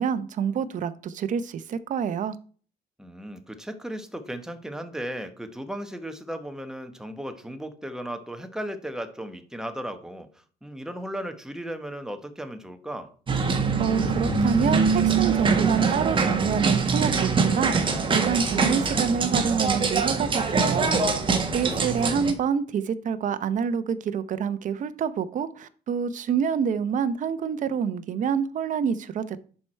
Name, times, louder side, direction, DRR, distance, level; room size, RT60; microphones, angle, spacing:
voice 1, 0.0-2.4 13.8-21.0 21.5-29.4, right 7 dB, 50° right, 0.7 m, -27 dB
voice 2, 3.0-10.3 10.6-13.1, right 1 dB, 5° right, 1.1 m, -36 dB
sound 1, 13.3-22.3, right 4 dB, 30° right, 1.4 m, -23 dB
11.0 x 4.7 x 4.4 m
cardioid pair, 110°, 17 cm